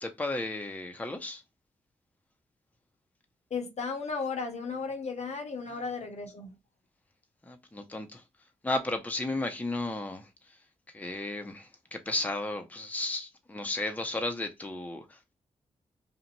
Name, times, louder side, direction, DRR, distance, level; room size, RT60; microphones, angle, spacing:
voice 1, 0.0-1.4 7.5-8.2 8.6-10.3 10.9-15.3, left 2 dB, 10° left, 0.6 m, -34 dB
voice 2, 3.5-6.6, left 4 dB, 55° left, 0.7 m, -35 dB
2.5 x 2.1 x 2.8 m
supercardioid pair, 45°, 13 cm